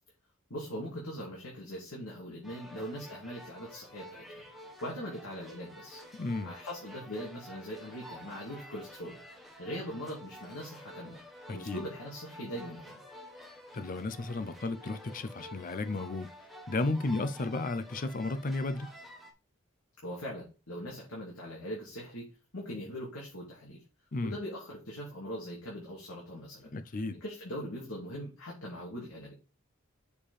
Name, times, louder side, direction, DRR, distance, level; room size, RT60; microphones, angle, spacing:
voice 1, 0.5-4.4 4.8-6.0 6.4-9.2 9.6-11.2 11.5-13.0 20.0-22.3 22.5-23.8 24.2-26.7 27.1-29.3, equal, 80° left, 2.6 m, -41 dB
sound 1, 2.4-19.3, equal, ahead, 1.3 m, -50 dB
voice 2, 6.1-6.5 11.5-11.8 13.7-16.3 16.7-18.9 24.1-24.4 26.7-27.2, left 2 dB, 40° left, 0.5 m, -33 dB
6.8 x 5.0 x 4.2 m
head